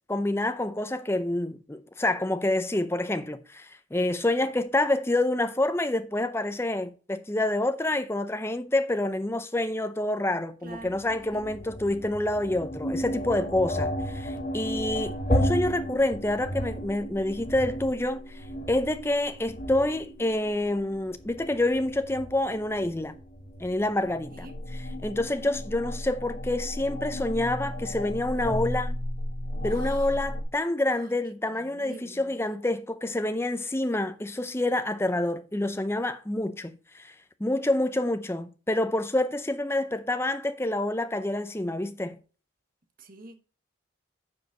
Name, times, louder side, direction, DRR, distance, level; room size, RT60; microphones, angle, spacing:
voice 1, 0.1-18.4 18.7-23.1 23.6-29.0 29.6-37.1 37.4-42.2, left 1 dB, 15° left, 0.6 m, -27 dB
voice 2, 10.6-11.0 11.3-11.5 24.4-24.5 29.8-30.0 31.8-32.5 43.0-43.4, right 2 dB, 45° right, 1.1 m, -45 dB
sound 1, 10.7-30.4, equal, 45° left, 1.6 m, -34 dB
9.5 x 5.0 x 4.8 m
head